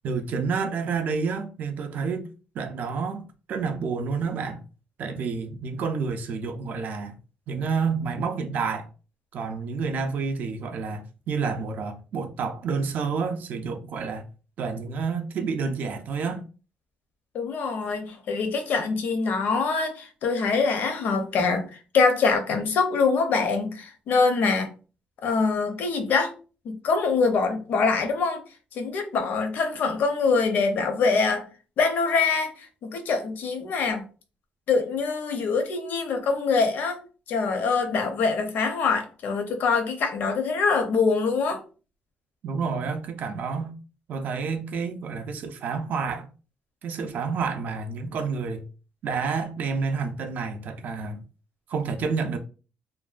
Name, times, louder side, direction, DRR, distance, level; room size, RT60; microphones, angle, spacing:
voice 1, 0.0-2.3 2.5-4.6 5.0-7.1 7.5-8.9 9.3-14.2 14.6-16.4 42.4-43.7 44.1-46.3 46.8-48.6 49.0-51.2 51.7-52.4, right 5 dB, 60° right, 0.4 m, -29 dB
voice 2, 17.3-21.7 21.9-24.7 25.2-26.3 26.6-28.4 28.8-31.5 31.8-34.1 34.7-37.0 37.3-41.6, left 4 dB, 65° left, 0.5 m, -24 dB
2.6 x 2.1 x 2.3 m
cardioid pair, 145°, 3 cm